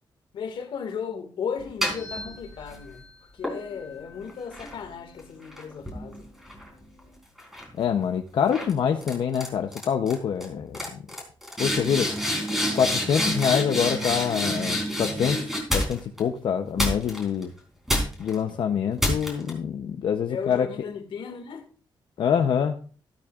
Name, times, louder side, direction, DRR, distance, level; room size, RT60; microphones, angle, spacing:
voice 1, 0.3-3.1 3.3-6.3 20.3-21.7, left 6 dB, 85° left, 1.9 m, -35 dB
sound 1, 1.6-2.8 3.4-7.0 7.4-7.8 8.5-8.7 9.0-9.5 9.7-10.1 10.4-10.5 10.7-16.2 16.8-17.4 17.9-18.4 19.0-19.5, left 1 dB, 5° right, 3.6 m, -29 dB
voice 2, 7.8-11.0 11.6-12.1 12.7-17.5 18.2-20.7 22.2-22.8, left 7 dB, 65° left, 0.7 m, -25 dB
14.0 x 12.0 x 2.5 m
wide cardioid pair, 160°, 9 cm